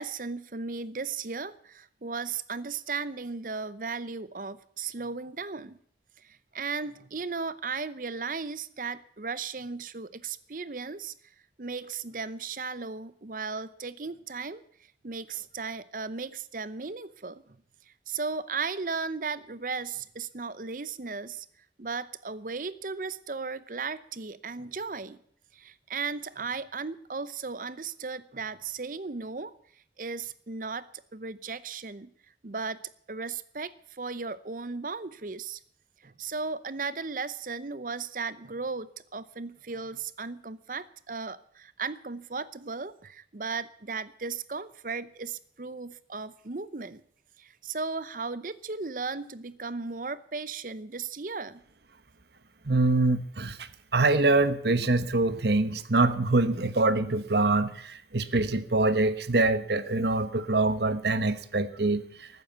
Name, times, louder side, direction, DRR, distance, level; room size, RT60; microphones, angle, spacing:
voice 1, 0.0-5.8 6.2-11.1 11.6-14.6 15.0-17.4 18.1-21.5 21.8-25.2 25.5-29.5 30.0-30.9 31.1-32.1 32.4-32.8 33.1-35.6 36.0-47.0 47.4-51.6, right 4 dB, 50° right, 16 dB, 0.7 m, -36 dB
voice 2, 52.6-53.7 53.9-62.3, right 2 dB, 70° right, 13 dB, 1.1 m, -25 dB
13.5 x 9.5 x 9.3 m, 0.64 s
head